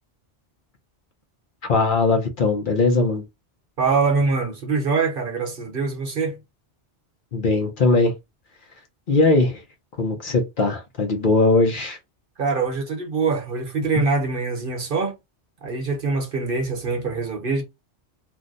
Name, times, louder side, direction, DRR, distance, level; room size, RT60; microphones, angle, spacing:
voice 1, 1.7-3.2 7.3-8.1 9.1-9.6 10.0-12.0, left 3 dB, 50° left, 0.8 m, -20 dB
voice 2, 3.8-6.4 12.4-15.1 15.6-17.6, right 4 dB, 55° right, 1.0 m, -24 dB
2.6 x 2.1 x 3.7 m
omnidirectional pair, 1.2 m